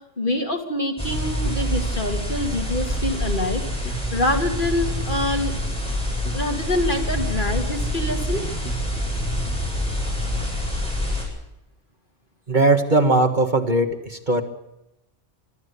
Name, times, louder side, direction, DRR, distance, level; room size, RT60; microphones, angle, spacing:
voice 1, 0.2-5.5 6.3-8.4, left 1 dB, 40° left, 3 dB, 3.0 m, -25 dB
sound 1, 1.0-11.2, left 1 dB, 5° left, 8.0 m, -26 dB
Bass guitar, 1.1-10.6, equal, 65° left, 4.2 m, -36 dB
voice 2, 12.5-14.4, right 2 dB, 40° right, 6 dB, 1.7 m, -19 dB
25.0 x 13.5 x 8.2 m, 0.89 s
omnidirectional pair, 1.3 m